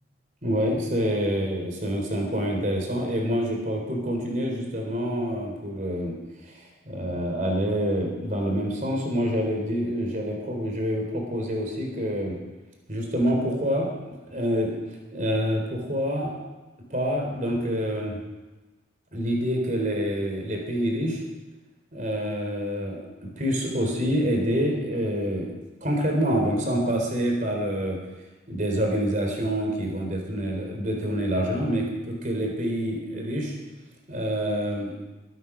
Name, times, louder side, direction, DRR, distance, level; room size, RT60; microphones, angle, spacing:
voice 1, 0.4-6.2 6.5-12.4 12.9-14.8 15.1-16.4 16.9-18.2 19.1-21.2 21.9-25.5 25.8-28.0 28.5-33.5 34.1-35.0, equal, 40° right, 1 dB, 4.0 m, -27 dB
22.0 x 9.4 x 6.3 m, 1.1 s
head